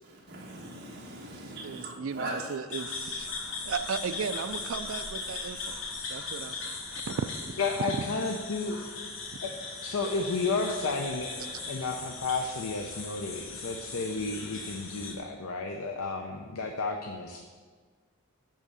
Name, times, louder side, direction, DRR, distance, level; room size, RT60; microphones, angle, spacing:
voice 1, 0.0-2.8 3.4-3.6 5.2-5.3 5.6-5.7, right 1 dB, 45° right, -3 dB, 1.7 m, -41 dB
voice 2, 1.6-3.3 3.7-5.8 6.1-7.9, right 5 dB, 70° right, 10 dB, 0.4 m, -36 dB
sound 1, 2.7-15.2, left 4 dB, 65° left, 1.3 m, -38 dB
voice 3, 7.6-8.9 9.4-9.5 9.8-17.4, left 3 dB, 90° left, 3 dB, 0.6 m, -32 dB
10.5 x 3.6 x 6.8 m, 1.5 s
head